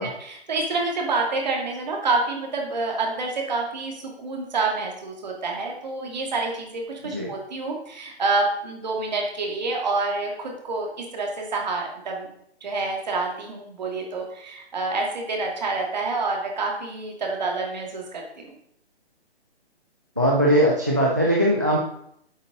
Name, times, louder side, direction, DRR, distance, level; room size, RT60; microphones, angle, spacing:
voice 1, 0.0-12.3 12.6-18.5, right 3 dB, 40° right, 0 dB, 2.5 m, -28 dB
voice 2, 20.2-21.8, equal, 15° right, -2 dB, 0.5 m, -20 dB
10.5 x 8.1 x 3.9 m, 0.71 s
hypercardioid pair, 175°, 33 cm